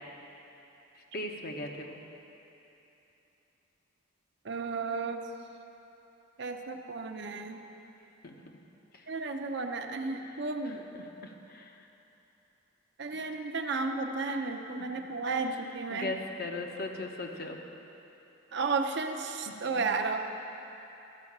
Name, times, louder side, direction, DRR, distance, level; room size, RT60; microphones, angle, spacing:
voice 1, 1.1-2.0 8.2-8.4 10.2-10.4 11.0-11.7 13.1-13.4 14.3-14.5 15.9-17.6 19.5-19.9, left 2 dB, 50° left, 2 dB, 0.9 m, -39 dB
voice 2, 4.4-5.2 6.4-7.6 9.1-10.9 13.0-16.1 18.5-20.2, right 4 dB, 60° right, 4 dB, 0.7 m, -33 dB
13.0 x 5.6 x 7.3 m, 3.0 s
head